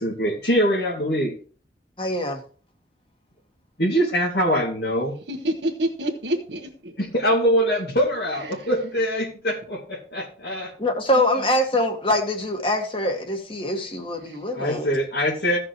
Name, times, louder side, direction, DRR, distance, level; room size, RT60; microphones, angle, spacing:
voice 1, 0.0-1.3 3.8-5.2 7.0-10.7 14.6-15.6, equal, 65° left, -2 dB, 2.3 m, -23 dB
voice 2, 2.0-2.4 10.8-14.9, left 1 dB, 30° left, 3 dB, 1.8 m, -24 dB
voice 3, 5.3-6.9 8.4-8.7 14.2-14.4, right 1 dB, 85° right, 1 dB, 1.4 m, -28 dB
16.5 x 6.0 x 3.1 m, 0.40 s
head